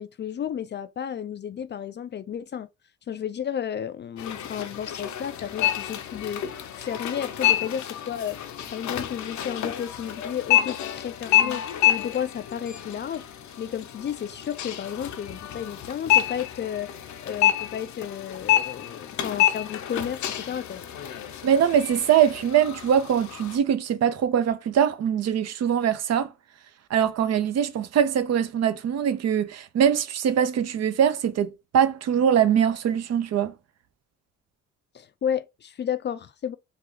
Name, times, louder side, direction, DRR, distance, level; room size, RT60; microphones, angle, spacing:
voice 1, 0.0-2.7 3.1-8.4 8.7-13.3 13.6-16.9 17.2-20.8 34.9-36.5, left 9 dB, 35° left, 0.4 m, -32 dB
sound 1, 4.2-23.6, left 12 dB, 70° left, 0.7 m, -28 dB
voice 2, 21.4-26.3 26.9-33.5, right 9 dB, 60° right, 0.6 m, -22 dB
3.8 x 2.3 x 3.1 m
cardioid pair, 90°, 30 cm